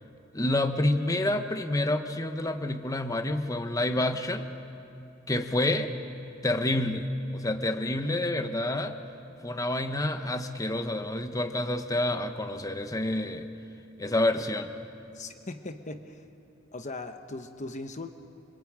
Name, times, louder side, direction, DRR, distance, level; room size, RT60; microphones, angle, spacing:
voice 1, 0.3-4.5 5.3-5.9 6.4-9.0 9.4-13.5 14.0-14.7, left 1 dB, 15° left, 7 dB, 1.2 m, -28 dB
voice 2, 15.1-16.3 16.7-18.1, left 2 dB, 40° left, 7 dB, 1.1 m, -39 dB
27.0 x 24.5 x 8.9 m, 2.6 s
head